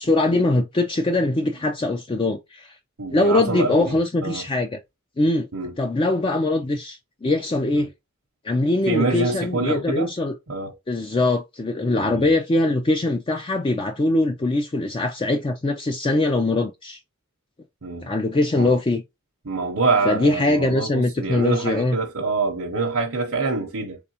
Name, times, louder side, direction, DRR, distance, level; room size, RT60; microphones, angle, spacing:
voice 1, 0.0-2.8 3.1-4.8 5.2-5.5 5.8-7.9 8.4-10.3 10.9-17.0 18.0-19.0 20.1-22.0, left 2 dB, 25° left, 0.4 m, -22 dB
voice 2, 3.0-3.9 4.2-4.4 5.5-5.7 7.8-7.9 8.9-10.1 10.5-10.7 12.0-12.3 17.8-18.1 18.6-18.7 19.4-24.0, right 3 dB, 65° right, 0.8 m, -25 dB
3.6 x 3.4 x 2.8 m
head